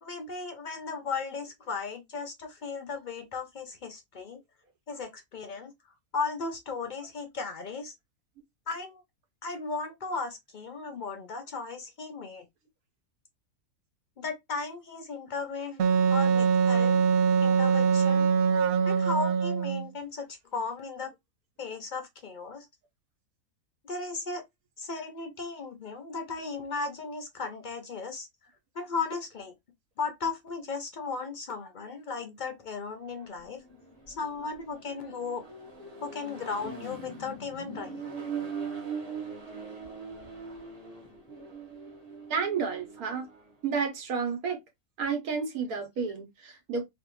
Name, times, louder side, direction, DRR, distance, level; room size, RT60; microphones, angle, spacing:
voice 1, 0.0-4.4 4.9-5.7 6.1-7.9 8.7-9.0 9.4-12.5 14.2-15.8 16.1-17.0 17.4-18.3 18.9-21.1 21.6-22.7 23.8-24.4 24.8-28.3 28.7-29.5 30.0-33.6 34.1-35.5 36.0-38.0 44.5-44.6, left 4 dB, 65° left, 0.4 m, -36 dB
Wind instrument woodwind instrument, 15.8-19.9, right 6 dB, 65° right, 0.6 m, -23 dB
Accelerating revving vroom, 33.1-43.5, right 5 dB, 30° right, 1.0 m, -41 dB
voice 2, 42.3-43.3 43.6-44.6 45.0-46.9, right 5 dB, 90° right, 1.5 m, -31 dB
3.2 x 2.5 x 3.0 m
omnidirectional pair, 1.5 m